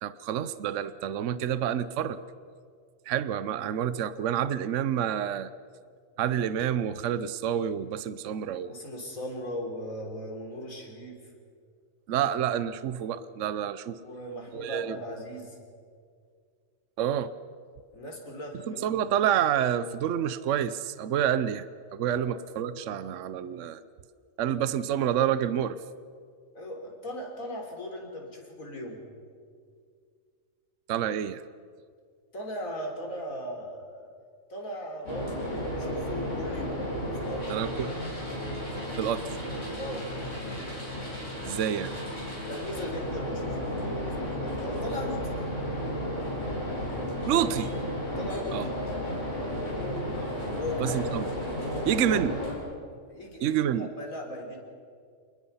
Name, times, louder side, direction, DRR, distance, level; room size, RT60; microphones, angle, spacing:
voice 1, 0.0-2.2 3.1-5.5 6.2-8.7 12.1-14.0 14.5-15.0 17.0-17.3 18.7-21.7 21.9-23.8 24.4-25.8 30.9-31.4 37.5-37.9 39.0-39.4 41.4-41.9 47.3-47.7 48.5-48.6 50.2-50.3 50.8-51.3 51.9-52.4 53.4-53.9, right 9 dB, 70° right, 14 dB, 1.0 m, -28 dB
voice 2, 8.6-11.2 12.2-12.3 14.0-15.6 17.9-19.0 22.1-22.2 26.5-29.0 32.3-34.1 34.5-36.8 37.2-37.5 39.8-40.0 42.4-45.3 48.2-48.6 50.6-51.1 51.6-52.3 53.1-54.6, equal, 85° left, 1 dB, 4.1 m, -38 dB
sound 1, 35.0-52.6, equal, 60° left, 5.8 m, -33 dB
27.5 x 20.0 x 5.6 m, 2.1 s
omnidirectional pair, 1.4 m